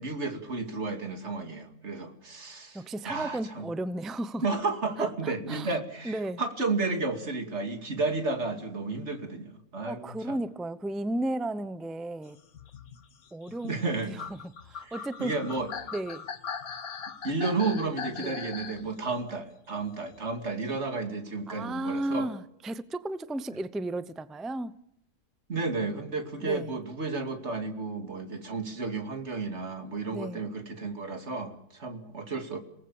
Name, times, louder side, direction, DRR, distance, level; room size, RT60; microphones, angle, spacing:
voice 1, 0.0-3.7 4.4-10.4 13.6-14.1 14.8-14.9 15.2-15.7 17.2-22.3 25.5-32.6, right 3 dB, 50° right, 2.7 m, -32 dB
voice 2, 2.7-4.4 5.0-5.8 6.0-6.4 9.9-12.4 13.3-15.3 15.9-16.3 18.2-18.4 21.5-24.8 26.4-26.8 30.1-30.5, right 1 dB, ahead, 0.3 m, -34 dB
sound 1, 12.4-18.9 20.1-20.2, left 6 dB, 75° left, 1.7 m, -40 dB
27.5 x 18.5 x 7.1 m
omnidirectional pair, 1.5 m